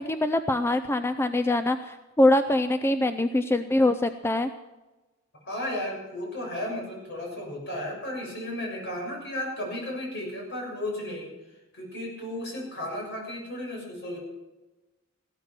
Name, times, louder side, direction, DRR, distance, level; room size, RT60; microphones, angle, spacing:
voice 1, 0.0-4.5, left 1 dB, 10° left, 10 dB, 0.4 m, -24 dB
voice 2, 5.4-11.3 11.7-14.2, left 1 dB, 55° left, -1 dB, 6.9 m, -34 dB
16.0 x 12.5 x 6.1 m, 1.1 s
head